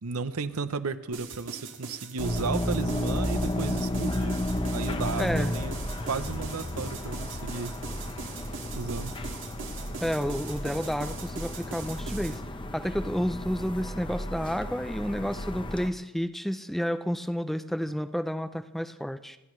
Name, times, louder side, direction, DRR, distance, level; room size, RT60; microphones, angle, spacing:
voice 1, 0.0-4.4 4.7-5.7 6.0-7.8 8.7-9.2, right 4 dB, 75° right, 12 dB, 0.7 m, -34 dB
sound 1, 1.1-12.4, right 5 dB, 60° right, 2.0 m, -42 dB
sound 2, 2.2-15.9, left 1 dB, 25° left, 0.8 m, -33 dB
voice 2, 5.2-5.5 10.0-12.4 12.7-19.4, equal, ahead, 11 dB, 0.4 m, -30 dB
28.5 x 11.0 x 3.2 m, 0.95 s
head